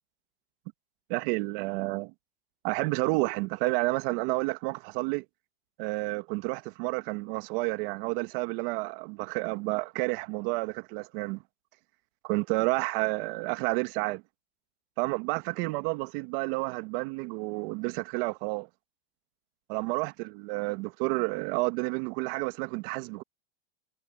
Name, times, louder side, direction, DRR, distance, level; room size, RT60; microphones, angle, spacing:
voice 1, 1.1-2.1 2.6-5.2 5.8-11.4 12.2-14.2 15.0-18.7 19.7-23.2, right 24 dB, 55° right, 1.7 m, -30 dB
supercardioid pair, 135°, 32 cm